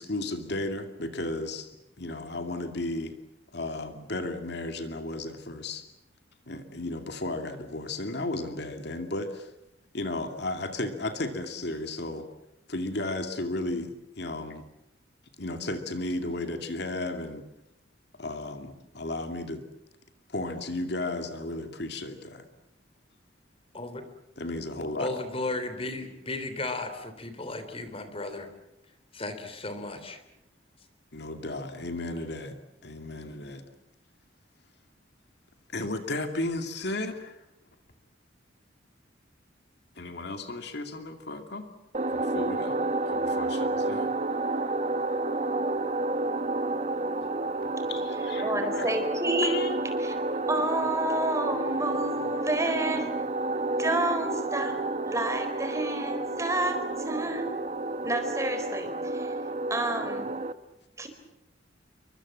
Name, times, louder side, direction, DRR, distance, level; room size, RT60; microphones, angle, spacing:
voice 1, 0.0-1.7 2.0-3.2 3.5-5.9 6.5-9.5 9.9-12.3 12.7-14.7 15.4-17.4 18.2-19.7 20.3-22.5 24.4-25.1 31.1-33.7 35.7-37.4 40.0-41.7 42.1-44.1 47.6-48.9 49.4-49.8, left 2 dB, 60° left, 6 dB, 2.5 m, -34 dB
voice 2, 25.0-28.5 29.1-30.2, left 2 dB, 30° left, 9 dB, 3.4 m, -35 dB
sound 1, 41.9-60.5, right 2 dB, 35° right, 1.1 m, -30 dB
voice 3, 48.4-49.6 50.0-50.1 50.5-53.2 53.8-57.5 58.0-59.4 59.7-60.3 61.0-61.1, right 1 dB, 15° right, 6 dB, 4.4 m, -30 dB
29.0 x 24.0 x 7.5 m, 0.86 s
head